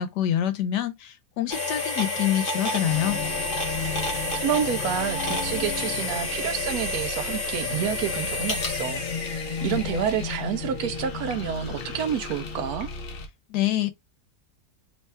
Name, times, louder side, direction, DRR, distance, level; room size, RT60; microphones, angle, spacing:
voice 1, 0.0-3.2 13.5-13.9, left 11 dB, 80° left, 1.3 m, -26 dB
sound 1, 1.5-10.4, left 2 dB, 35° left, 1.1 m, -30 dB
sound 2, 2.9-13.3, left 5 dB, 60° left, 0.6 m, -35 dB
voice 2, 4.3-12.9, right 9 dB, 70° right, 1.0 m, -29 dB
3.2 x 2.3 x 4.2 m
omnidirectional pair, 1.8 m